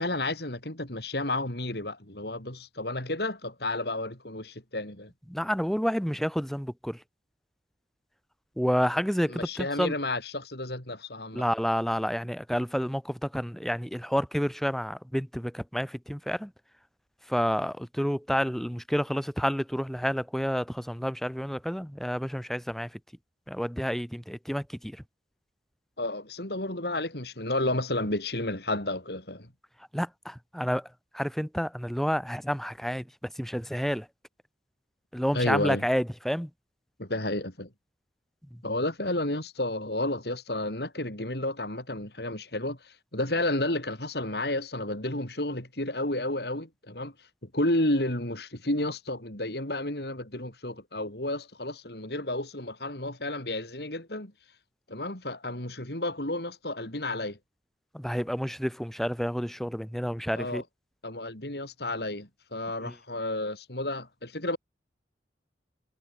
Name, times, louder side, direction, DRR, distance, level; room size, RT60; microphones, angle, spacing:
voice 1, 0.0-5.1 9.3-11.4 26.0-29.5 35.3-35.8 37.0-37.7 38.6-47.1 47.5-54.3 54.9-57.4 60.4-60.6 61.0-64.6, left 1 dB, 60° left, 4.6 m, -31 dB
voice 2, 5.3-7.0 8.6-9.9 11.3-16.5 17.3-22.9 23.5-25.0 29.9-30.9 31.1-33.0 33.4-34.1 35.1-36.5 57.9-60.6 62.8-62.9, equal, ahead, 6.9 m, -29 dB
head